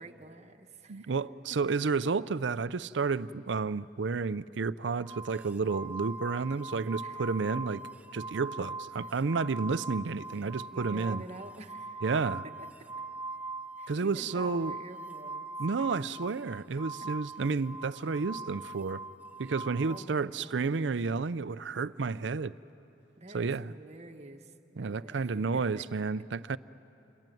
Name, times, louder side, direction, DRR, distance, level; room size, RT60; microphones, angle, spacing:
voice 1, 0.0-1.2 7.0-7.2 10.7-12.0 12.4-12.7 13.8-15.5 19.8-20.9 23.2-25.9, right 2 dB, 35° right, 4 dB, 1.4 m, -48 dB
voice 2, 0.9-7.8 8.1-11.2 12.0-12.4 13.9-14.8 15.6-19.0 19.4-22.5 23.3-23.7 24.8-26.6, right 4 dB, 70° right, 16 dB, 0.5 m, -31 dB
sound 1, 5.1-20.0, right 3 dB, 10° right, 0.7 m, -41 dB
28.0 x 23.0 x 9.2 m, 2.8 s
head